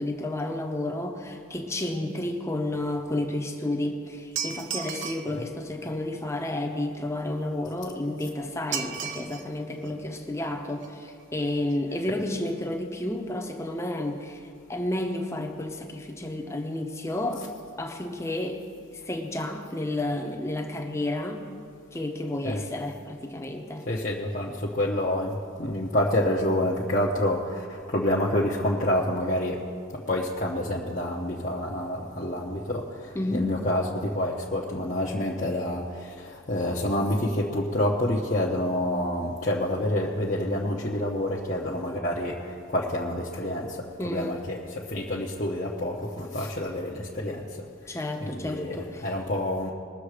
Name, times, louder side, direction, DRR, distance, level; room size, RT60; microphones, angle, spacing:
voice 1, 0.0-17.5 17.8-18.6 19.0-21.4 21.9-23.9 33.1-33.5 44.0-44.4 47.9-49.1, left 1 dB, 15° left, 3 dB, 0.9 m, -31 dB
sound 1, 4.3-5.3 8.7-9.5 9.8-9.9 10.8-10.9 11.2-11.3 11.6-11.7 12.0-12.1, right 7 dB, 55° right, 0.7 m, -34 dB
voice 2, 23.9-29.6 29.9-47.7 48.2-49.7, left 1 dB, 35° left, -5 dB, 0.9 m, -28 dB
20.5 x 7.0 x 5.0 m, 2.2 s
head